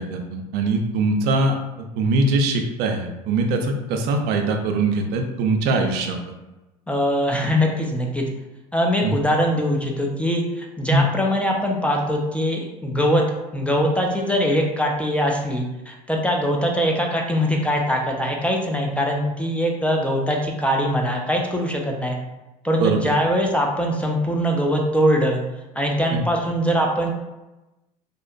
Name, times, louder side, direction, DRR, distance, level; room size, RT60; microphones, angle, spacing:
voice 1, 0.0-6.2 9.0-9.2 10.9-11.1 22.8-23.1 26.1-26.2, right 2 dB, 60° right, 4 dB, 0.4 m, -22 dB
voice 2, 6.9-8.3 8.7-13.2 13.5-22.2 22.6-25.4 25.8-27.1, equal, 5° left, 0 dB, 0.4 m, -22 dB
2.6 x 2.1 x 2.4 m, 1.0 s
hypercardioid pair, 80°, 19 cm